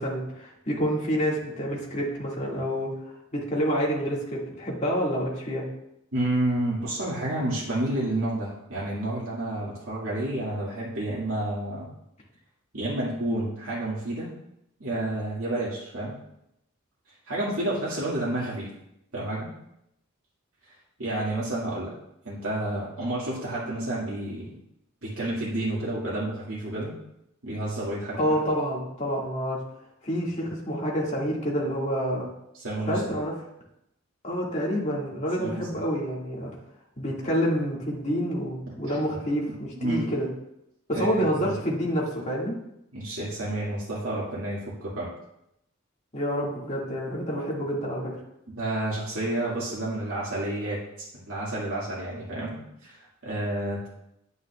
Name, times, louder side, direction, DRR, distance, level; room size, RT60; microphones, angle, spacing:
voice 1, 0.0-2.9 3.3-5.7 28.2-29.6 30.0-32.3 32.9-33.3 34.2-36.5 37.0-40.3 40.9-42.5 46.1-48.1, equal, 35° left, -4 dB, 2.1 m, -28 dB
voice 2, 6.1-11.9 12.7-14.3 14.8-16.1 17.3-18.7 19.1-19.5 20.6-21.9 22.2-24.5 25.0-26.9 27.4-28.2 32.5-33.0 35.4-35.6 38.7-39.0 39.8-40.1 40.9-41.5 42.9-45.1 48.5-53.9, right 1 dB, 80° right, -7 dB, 2.1 m, -30 dB
9.9 x 9.3 x 2.4 m, 0.82 s
head